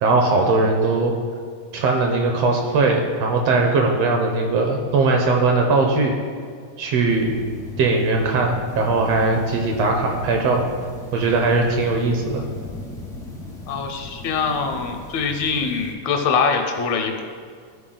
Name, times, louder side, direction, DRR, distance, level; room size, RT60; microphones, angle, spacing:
voice 1, 0.0-1.1 1.7-6.1 6.8-7.3 7.8-10.7 11.1-12.4, right 3 dB, 75° right, 2 dB, 1.6 m, -19 dB
sound 1, 7.0-15.9, left 2 dB, 5° left, 0.4 m, -37 dB
voice 2, 13.7-17.2, left 5 dB, 75° left, 4 dB, 2.0 m, -23 dB
12.5 x 4.3 x 3.8 m, 2.1 s
omnidirectional pair, 3.3 m